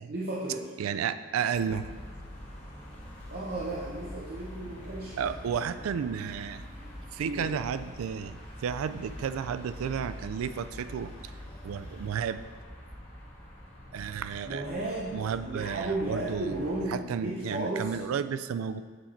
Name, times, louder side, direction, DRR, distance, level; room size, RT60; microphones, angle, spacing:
voice 1, 0.1-0.7 3.3-5.3 7.2-7.5 14.5-18.0, right 2 dB, 45° right, -5 dB, 0.7 m, -34 dB
voice 2, 0.8-1.9 5.2-6.6 7.1-11.3 11.6-12.4 13.9-14.7 15.1-18.8, right 7 dB, 90° right, 12 dB, 0.3 m, -32 dB
sound 1, 1.5-16.9, left 1 dB, 30° left, 1.7 m, -45 dB
7.9 x 4.5 x 4.3 m, 1.5 s
head